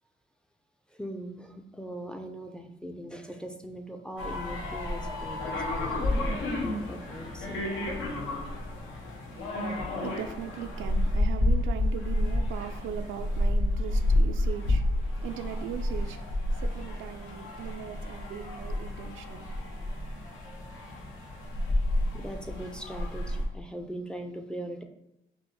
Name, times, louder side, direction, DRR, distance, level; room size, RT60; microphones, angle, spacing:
voice 1, 0.9-7.6 22.1-24.8, right 1 dB, 5° left, 0.4 m, -40 dB
sound 1, 4.2-23.4, left 1 dB, 80° left, 0.8 m, -30 dB
voice 2, 9.3-20.0, right 8 dB, 80° right, 0.4 m, -40 dB
5.2 x 2.0 x 3.1 m
cardioid pair, 90°, 20 cm